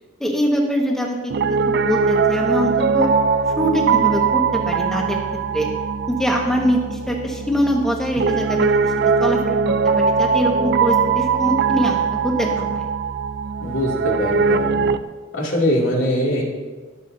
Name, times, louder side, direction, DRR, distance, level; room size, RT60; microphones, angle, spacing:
voice 1, 0.2-3.1 3.6-5.2 5.5-5.7 6.1-8.9 9.2-9.6 9.8-12.9, equal, ahead, -1 dB, 1.5 m, -23 dB
Piano, 1.3-15.0, right 5 dB, 50° right, 0.3 m, -21 dB
voice 2, 13.6-14.9 15.3-16.4, equal, 65° left, -3 dB, 2.6 m, -22 dB
22.5 x 7.6 x 2.7 m, 1.4 s
head